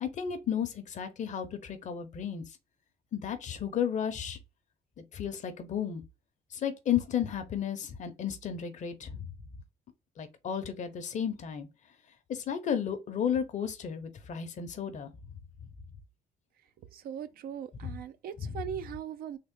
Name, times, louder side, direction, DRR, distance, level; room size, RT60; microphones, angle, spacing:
voice 1, 0.0-2.4 3.1-4.4 5.0-6.0 6.5-9.3 10.2-11.7 12.3-15.1 17.8-18.0 18.4-18.5, left 8 dB, 45° left, 0.7 m, -33 dB
voice 2, 16.9-19.4, right 8 dB, 60° right, 0.5 m, -39 dB
3.6 x 2.0 x 3.6 m
cardioid pair, 110°, 17 cm